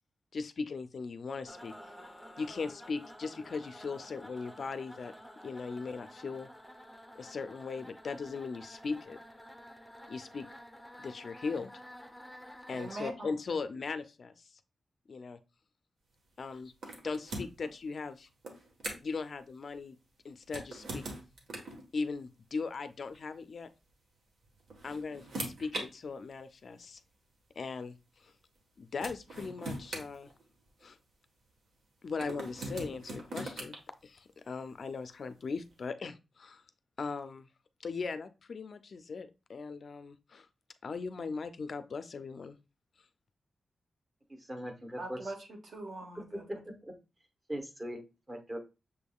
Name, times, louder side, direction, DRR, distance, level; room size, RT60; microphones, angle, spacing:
voice 1, 0.3-1.7 2.4-5.1 5.4-6.5 7.2-9.2 10.1-10.5 11.0-11.7 12.7-14.6 15.1-15.4 16.4-16.7 17.0-18.3 19.0-20.0 20.2-21.0 21.9-23.7 24.8-27.0 27.6-28.3 28.8-30.3 30.8-31.0 32.0-33.7 34.0-36.6 37.0-37.5 37.8-40.5 40.8-42.6, left 4 dB, 50° left, 0.3 m, -39 dB
sound 1, 1.5-13.1, equal, ahead, 0.6 m, -51 dB
voice 2, 12.7-13.3 45.0-46.5, right 2 dB, 55° right, 1.0 m, -42 dB
sound 2, 16.8-17.7 18.4-19.2 20.4-21.8 23.1-23.3 24.4-25.9 26.8-26.9 28.6-28.7 29.0-30.8 32.2-33.8, right 1 dB, 80° right, 1.2 m, -41 dB
voice 3, 44.5-45.2 46.3-46.9 47.5-48.0 48.3-48.6, equal, 25° right, 0.9 m, -40 dB
6.7 x 3.5 x 2.3 m
wide cardioid pair, 170°, 0 cm